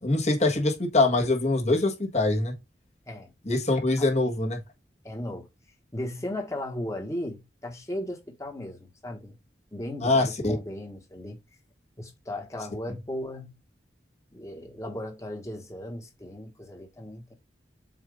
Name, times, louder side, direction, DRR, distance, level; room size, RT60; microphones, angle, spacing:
voice 1, 0.0-2.5 3.4-4.6 10.0-10.6, left 2 dB, 40° left, 1.5 m, -24 dB
voice 2, 5.0-5.5 5.9-9.4 9.7-11.4 12.0-13.5 14.3-17.3, left 1 dB, 15° left, 1.4 m, -36 dB
7.5 x 2.7 x 5.0 m
head